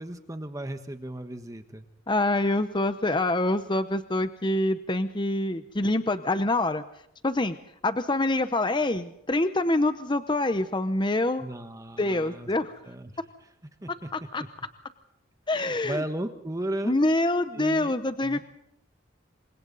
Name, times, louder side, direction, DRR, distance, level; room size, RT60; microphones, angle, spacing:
voice 1, 0.0-1.9 11.4-12.5 12.9-13.1 13.8-14.5 15.5-16.9 17.5-17.9 18.2-18.4, right 1 dB, 15° right, 8 dB, 1.3 m, -35 dB
voice 2, 2.1-6.8 7.2-7.6 7.8-11.4 12.0-12.7 14.3-14.4 15.5-16.0 16.8-18.4, left 2 dB, 25° left, 11 dB, 0.8 m, -25 dB
28.5 x 25.0 x 4.1 m, 0.74 s
head